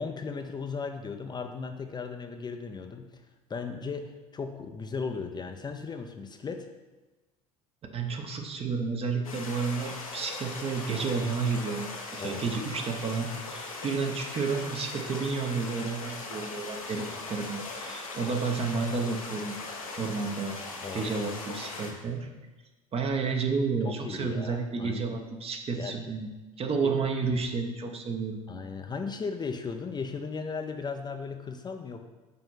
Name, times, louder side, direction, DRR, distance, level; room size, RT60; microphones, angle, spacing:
voice 1, 0.0-3.1 3.5-6.7 12.2-12.6 20.8-21.1 22.1-22.2 23.8-25.0 25.8-26.0 26.8-26.9 28.5-32.0, left 5 dB, 25° left, 5 dB, 0.6 m, -36 dB
voice 2, 7.9-19.6 20.0-20.6 20.9-22.3 22.9-26.3 26.6-28.4, right 4 dB, 35° right, 4 dB, 1.1 m, -31 dB
sound 1, 9.2-21.9, left 3 dB, 90° left, 1.2 m, -39 dB
5.6 x 4.4 x 5.7 m, 1.2 s
hypercardioid pair, 75°, 17 cm